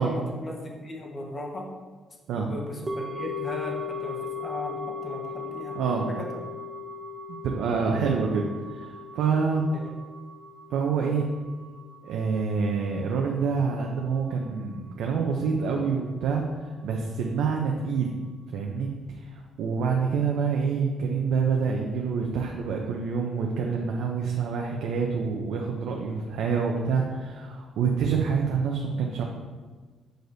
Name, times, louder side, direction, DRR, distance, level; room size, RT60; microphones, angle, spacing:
voice 1, 0.0-1.7 2.3-6.3 7.9-8.2 9.7-9.9, left 1 dB, 35° left, -1 dB, 1.2 m, -37 dB
sound 1, 2.9-13.1 13.4-13.5, left 4 dB, 25° right, 0.7 m, -38 dB
voice 2, 5.8-6.1 7.4-9.7 10.7-11.3 12.0-18.2 18.5-18.9 19.3-29.2, right 5 dB, 80° right, 0 dB, 0.6 m, -27 dB
7.7 x 4.9 x 2.7 m, 1.4 s
cardioid pair, 90°, 0 cm